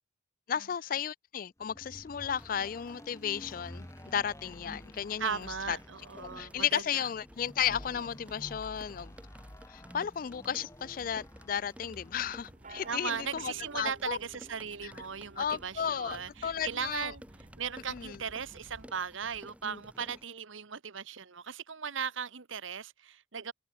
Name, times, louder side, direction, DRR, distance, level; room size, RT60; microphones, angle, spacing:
voice 1, 0.5-5.8 6.2-9.1 9.7-14.2 14.8-14.9 15.4-17.1 17.9-18.2 19.6-19.8, left 8 dB, 45° left, 0.3 m, -34 dB
sound 1, 1.6-12.4, left 1 dB, 15° left, 1.5 m, -50 dB
sound 2, 2.2-20.3, equal, 5° right, 6.4 m, -55 dB
voice 2, 5.2-7.1 12.8-17.2 17.6-23.5, right 6 dB, 80° right, 1.2 m, -37 dB
sound 3, 12.2-18.9, right 2 dB, 40° right, 2.2 m, -54 dB
head